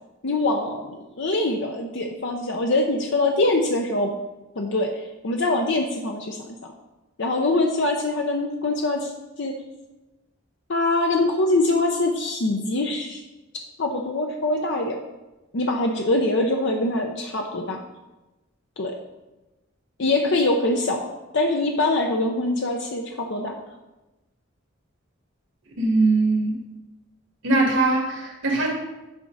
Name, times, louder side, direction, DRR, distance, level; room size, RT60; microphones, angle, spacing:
voice 1, 0.2-4.1 4.6-6.5 7.2-9.1 9.4-9.5 10.7-13.2 13.8-15.0 15.5-17.8 18.8-19.0 20.0-23.6, left 2 dB, 65° left, 2 dB, 0.7 m, -23 dB
voice 2, 25.8-26.6 27.4-28.7, right 2 dB, 90° right, -2 dB, 2.3 m, -21 dB
9.8 x 4.9 x 4.0 m, 1.0 s
head